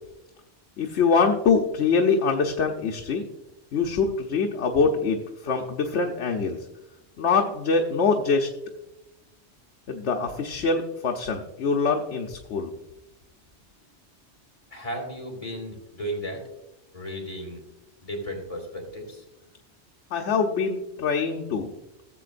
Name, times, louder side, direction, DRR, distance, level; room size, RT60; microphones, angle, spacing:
voice 1, 0.8-3.2 3.7-6.6 7.2-8.5 9.9-12.7 20.1-21.7, left 5 dB, 80° left, 2 dB, 1.1 m, -24 dB
voice 2, 14.7-16.4 16.9-17.6 18.0-19.2, equal, 30° left, -1 dB, 2.7 m, -34 dB
17.0 x 7.5 x 2.5 m, 0.93 s
omnidirectional pair, 1.2 m